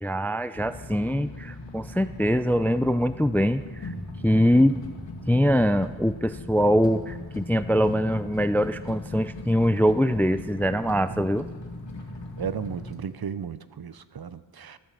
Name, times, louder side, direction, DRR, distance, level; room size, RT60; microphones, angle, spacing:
voice 1, 0.0-3.9 4.2-4.8 5.3-11.5, equal, 5° left, 0.3 m, -23 dB
sound 1, 0.5-12.9, left 2 dB, 70° left, 2.2 m, -39 dB
voice 2, 11.1-11.5 12.4-14.8, right 7 dB, 50° right, 0.7 m, -35 dB
14.5 x 12.5 x 6.7 m
wide cardioid pair, 115°, 46 cm